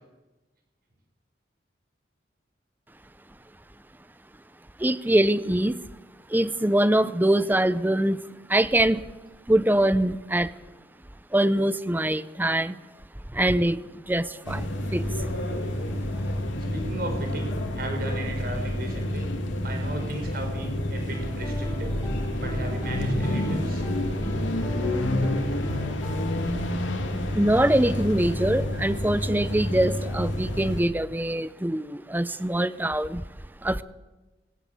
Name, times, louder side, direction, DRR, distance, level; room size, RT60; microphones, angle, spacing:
voice 1, 4.8-5.8 6.3-8.2 8.5-9.1 9.5-10.5 11.3-12.8 13.3-15.3 27.3-33.2 33.6-33.8, right 1 dB, 10° right, 15 dB, 0.6 m, -23 dB
sound 1, 14.4-30.8, left 1 dB, 90° left, 2.9 m, -29 dB
voice 2, 16.7-19.3 19.6-22.0 22.4-23.8 32.3-32.4, right 1 dB, 50° right, 3 dB, 6.2 m, -35 dB
sound 2, 21.1-26.5, right 1 dB, 15° left, 4.7 m, -40 dB
19.5 x 18.0 x 8.4 m, 1.1 s
head